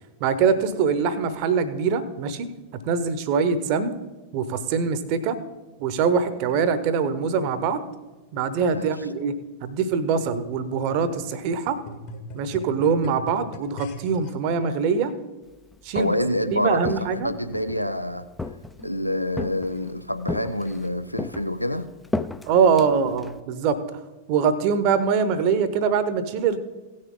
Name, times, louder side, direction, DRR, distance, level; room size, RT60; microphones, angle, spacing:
voice 1, 0.2-2.5 2.9-3.9 4.3-5.4 5.8-7.8 8.3-9.3 9.6-11.8 12.3-15.1 15.8-16.1 16.5-17.3 22.5-24.0 24.3-26.6, right 6 dB, 45° right, 13 dB, 0.9 m, -23 dB
sound 1, 9.9-14.3 15.1-15.2, left 2 dB, 45° left, 1.6 m, -41 dB
Walk footsteps, 15.7-16.4 16.8-17.8 18.4-19.0 19.4-19.9 20.3-20.9 21.2-23.4, left 2 dB, 5° left, 0.4 m, -33 dB
voice 2, 15.9-18.3 18.8-21.9, left 1 dB, 90° left, 11 dB, 0.4 m, -27 dB
16.5 x 6.5 x 3.8 m, 1.2 s
figure-of-eight pair, 90°, 0 cm